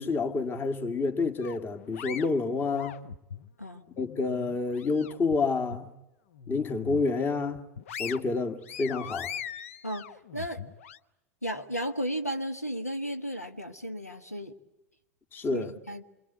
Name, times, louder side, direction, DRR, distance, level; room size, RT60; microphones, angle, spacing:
voice 1, 0.0-3.0 4.0-5.9 6.5-7.6 8.0-9.3 15.3-15.7, left 4 dB, 25° left, 2.1 m, -29 dB
sound 1, 1.4-3.5 3.9-5.4 5.7-5.9 6.3-7.1 7.5-11.0, left 8 dB, 60° left, 1.0 m, -41 dB
voice 2, 11.4-14.5 15.5-16.0, equal, 90° left, 1.6 m, -34 dB
28.5 x 23.5 x 8.3 m
figure-of-eight pair, 80°, 8 cm